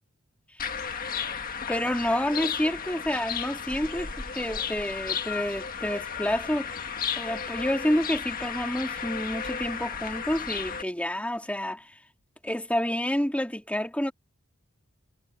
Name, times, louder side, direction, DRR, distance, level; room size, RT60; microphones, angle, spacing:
sound 1, 0.6-10.8, left 7 dB, 40° left, 1.7 m, -34 dB
voice 1, 1.7-6.7 7.2-12.0 12.4-14.1, equal, 5° left, 2.4 m, -29 dB
head